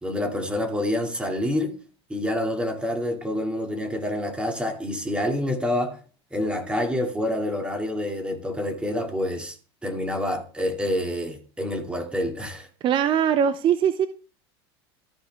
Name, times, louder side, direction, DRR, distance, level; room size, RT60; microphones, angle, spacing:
voice 1, 0.0-1.8 2.1-6.0 6.3-9.5 9.8-12.7, left 1 dB, 5° right, 2.4 m, -27 dB
voice 2, 12.8-14.1, right 8 dB, 35° right, 0.6 m, -21 dB
14.0 x 5.1 x 3.4 m
supercardioid pair, 105°, 14 cm